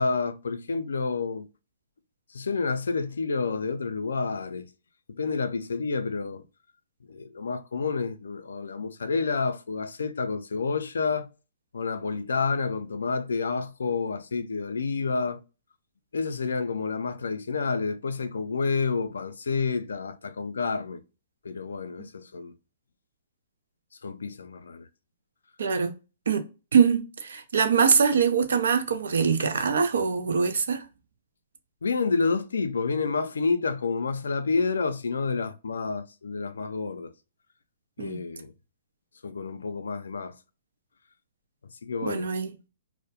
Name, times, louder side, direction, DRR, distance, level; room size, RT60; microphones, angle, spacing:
voice 1, 0.0-1.5 2.3-4.7 5.1-6.4 7.1-11.3 11.7-15.4 16.1-21.0 21.4-22.5 24.0-24.9 31.8-37.1 38.0-38.5 39.2-40.3 41.8-42.3, left 4 dB, 85° left, 0.3 m, -29 dB
voice 2, 25.6-26.0 26.3-26.4 26.7-30.8 38.0-38.2 42.0-42.5, right 6 dB, 75° right, 0.5 m, -23 dB
2.2 x 2.1 x 2.7 m
hypercardioid pair, 135°, 0 cm